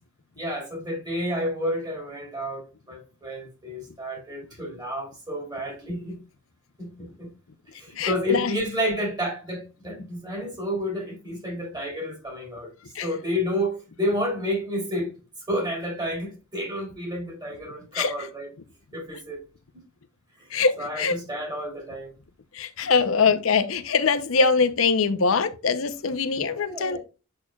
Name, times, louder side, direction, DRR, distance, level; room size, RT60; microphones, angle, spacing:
voice 1, 0.4-6.2 6.8-7.3 7.8-12.7 13.0-15.1 15.5-18.5 18.9-19.4 19.7-19.8 20.5-22.1 23.0-23.1 26.5-27.0, equal, 20° right, 3.0 m, -30 dB
voice 2, 8.0-8.5 12.9-13.1 17.9-18.1 20.5-21.2 22.5-27.0, left 5 dB, 85° left, 0.7 m, -23 dB
7.6 x 6.4 x 2.3 m
head